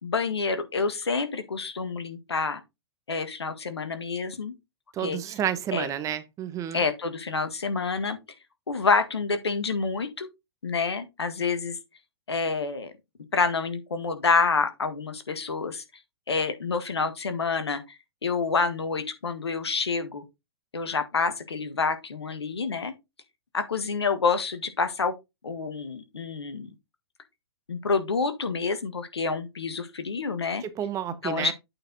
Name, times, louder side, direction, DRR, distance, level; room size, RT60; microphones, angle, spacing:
voice 1, 0.0-2.6 3.1-4.5 5.0-5.2 5.7-5.9 6.7-8.2 8.7-10.3 10.6-11.8 12.3-12.9 13.3-15.8 16.3-17.8 18.2-20.2 20.7-22.9 23.5-25.1 25.4-26.7 27.7-30.6 31.2-31.5, left 4 dB, 80° left, 1.7 m, -28 dB
voice 2, 4.9-6.8 30.6-31.5, right 10 dB, 25° right, 1.0 m, -30 dB
8.7 x 4.7 x 3.9 m
hypercardioid pair, 115°, 14 cm